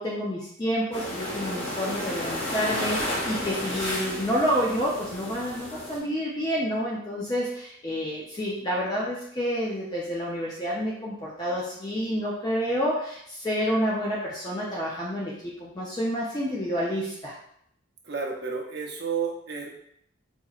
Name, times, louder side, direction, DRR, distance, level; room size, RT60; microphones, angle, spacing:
voice 1, 0.0-17.3, equal, 20° left, -5 dB, 0.5 m, -29 dB
sound 1, 0.9-6.0, left 1 dB, 80° left, 1.0 m, -32 dB
voice 2, 18.0-19.7, right 5 dB, 55° right, -1 dB, 0.7 m, -31 dB
4.2 x 2.8 x 2.4 m, 0.72 s
head